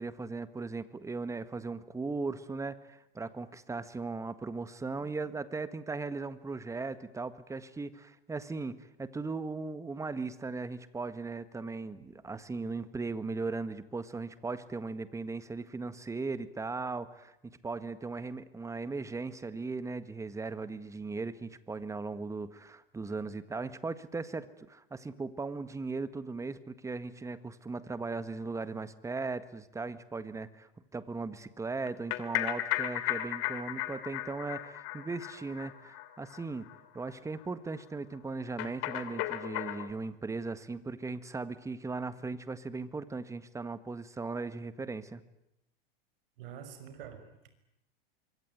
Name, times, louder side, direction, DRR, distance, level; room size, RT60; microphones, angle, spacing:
voice 1, 0.0-36.7 36.9-45.2, right 3 dB, 10° right, 14 dB, 1.6 m, -38 dB
sound 1, 31.9-36.4 36.7-36.8 37.1-37.2 37.4-37.5 38.6-39.9, left 15 dB, 50° left, 2.8 m, -35 dB
voice 2, 46.4-47.5, right 8 dB, 65° right, 10 dB, 5.8 m, -46 dB
25.0 x 23.5 x 9.6 m, 0.83 s
hypercardioid pair, 120°, 30 cm